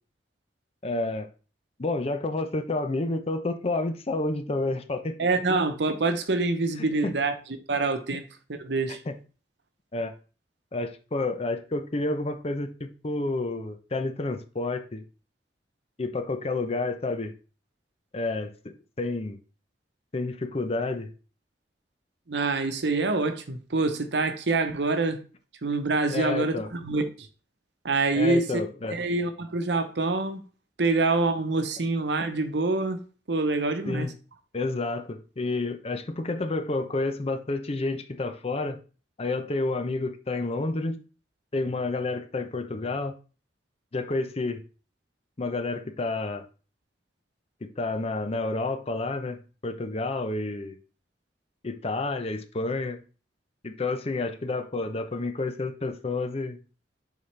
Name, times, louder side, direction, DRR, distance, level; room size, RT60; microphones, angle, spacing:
voice 1, 0.8-1.3 1.8-5.2 7.0-7.2 9.1-9.2 9.9-10.1 10.7-15.0 16.0-17.3 18.1-19.4 20.1-21.1 26.1-26.7 28.1-29.0 33.9-34.1 34.5-38.8 39.2-41.0 41.5-43.1 43.9-44.6 45.4-46.4 47.6-50.8 51.6-53.0 53.6-56.6, left 2 dB, 35° left, 0.6 m, -30 dB
voice 2, 5.2-7.3 7.7-8.2 8.5-9.0 22.3-25.2 25.6-27.3 27.8-28.6 28.9-30.4 30.8-33.0 33.3-34.1, right 3 dB, 75° right, 0.8 m, -26 dB
7.0 x 4.1 x 3.3 m
head